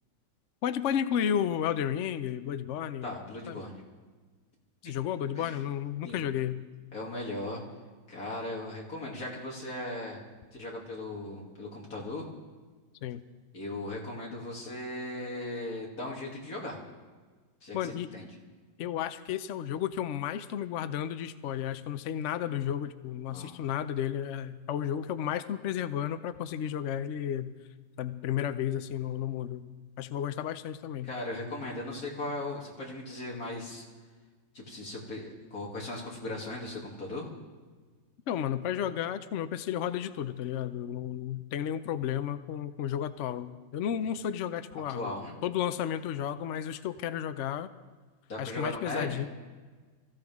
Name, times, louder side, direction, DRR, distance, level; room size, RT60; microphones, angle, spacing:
voice 1, 0.6-3.2 3.5-3.6 4.8-6.7 13.0-13.2 17.7-18.1 18.8-27.5 28.0-29.7 30.0-31.1 38.3-45.1 45.4-47.7 48.4-49.3, left 9 dB, 80° left, 11 dB, 0.6 m, -32 dB
voice 2, 3.0-3.7 4.8-5.0 5.3-5.6 6.0-6.2 6.9-7.7 8.1-10.2 10.5-12.3 13.5-16.8 17.6-18.3 23.3-23.5 31.0-33.9 34.5-37.3 44.9-45.3 48.3-49.2, left 2 dB, 50° left, -3 dB, 3.2 m, -38 dB
24.0 x 15.0 x 3.6 m, 1.4 s
omnidirectional pair, 2.0 m